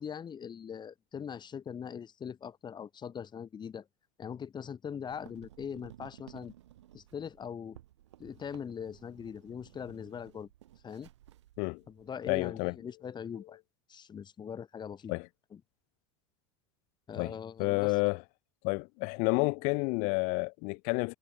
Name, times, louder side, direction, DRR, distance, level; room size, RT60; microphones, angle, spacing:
voice 1, 0.0-3.9 4.2-6.5 6.9-7.8 8.2-10.5 10.8-11.1 11.9-13.6 13.9-15.1 17.1-17.9, left 7 dB, 30° left, 5.8 m, -41 dB
sound 1, 5.1-12.1, right 13 dB, 80° right, 6.4 m, -56 dB
voice 2, 12.3-12.7 15.1-15.3 17.2-18.2 18.6-21.2, left 33 dB, 60° left, 0.5 m, -30 dB
hypercardioid pair, 90°, 15 cm